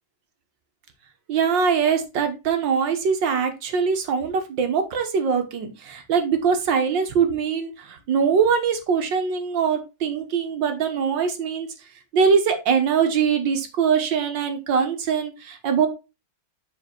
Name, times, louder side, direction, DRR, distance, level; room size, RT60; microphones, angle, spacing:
voice 1, 1.3-11.7 12.1-15.9, right 6 dB, 80° right, 6 dB, 1.9 m, -22 dB
7.5 x 4.3 x 4.3 m, 0.26 s
omnidirectional pair, 2.0 m